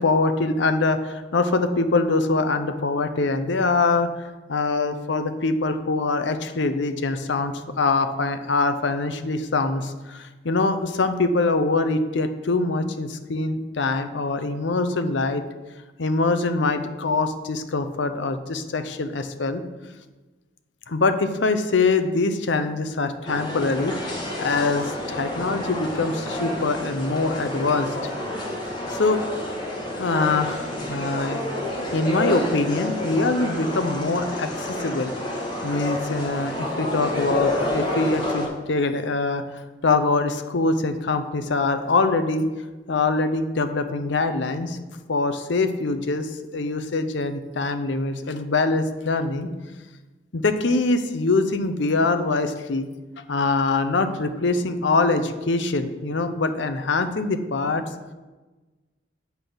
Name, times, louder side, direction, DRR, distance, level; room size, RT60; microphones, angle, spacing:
voice 1, 0.0-4.1 4.5-15.4 16.0-19.6 20.9-24.0 24.4-27.9 28.9-29.2 30.0-31.4 31.9-35.1 35.6-39.4 39.8-42.5 42.9-44.8 45.1-49.5 50.3-52.9 53.3-57.8, left 3 dB, 70° left, 9 dB, 0.6 m, -23 dB
sound 1, 23.3-38.5, left 1 dB, 20° left, 1.6 m, -29 dB
8.1 x 4.0 x 6.7 m, 1.2 s
head